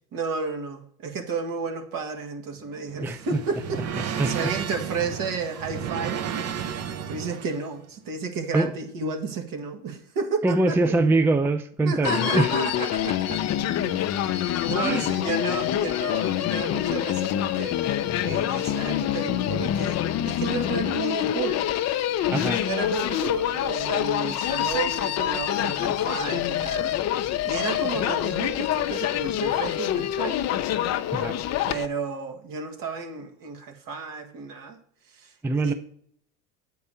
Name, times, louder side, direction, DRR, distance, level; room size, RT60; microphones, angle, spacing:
voice 1, 0.1-6.2 7.1-11.0 11.8-13.4 13.7-14.1 14.6-17.8 18.2-21.7 22.3-26.9 27.4-30.4 31.7-34.8 35.2-35.3 35.6-35.7, right 4 dB, 60° right, 1.6 m, -32 dB
sound 1, 2.5-7.7, right 8 dB, 40° right, 0.7 m, -33 dB
voice 2, 10.4-12.5 14.8-15.1 22.3-22.6 31.1-31.4 35.4-35.7, right 2 dB, 5° right, 0.4 m, -23 dB
Human voice, 12.0-31.9, left 11 dB, 45° left, 0.6 m, -26 dB
8.5 x 4.6 x 5.5 m
supercardioid pair, 90°, 38 cm